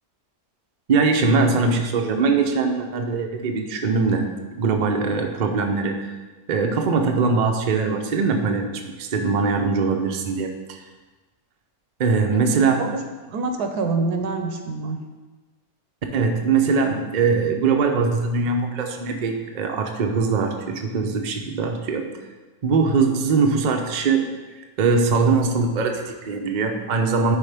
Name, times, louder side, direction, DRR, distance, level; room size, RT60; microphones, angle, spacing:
voice 1, 0.9-4.3 4.5-6.1 6.5-10.8 12.0-12.8 16.1-22.1 22.6-24.3 24.8-27.4, right 4 dB, 45° right, 3 dB, 0.6 m, -21 dB
voice 2, 12.8-15.0, right 3 dB, 85° right, 5 dB, 1.4 m, -26 dB
11.0 x 4.5 x 3.4 m, 1.2 s
omnidirectional pair, 1.6 m